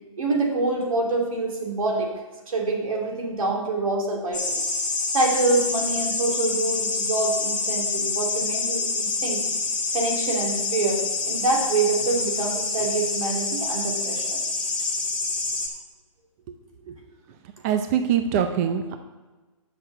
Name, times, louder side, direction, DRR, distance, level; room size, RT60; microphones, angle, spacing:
voice 1, 0.2-2.1 2.5-4.6 5.1-9.4 9.9-14.4, right 2 dB, 90° right, -1 dB, 2.9 m, -26 dB
sound 1, 4.3-15.7, left 3 dB, 5° left, 1.3 m, -27 dB
voice 2, 17.6-19.0, right 8 dB, 30° right, 7 dB, 0.6 m, -23 dB
8.1 x 6.2 x 6.6 m, 1.2 s
hypercardioid pair, 150°, 17 cm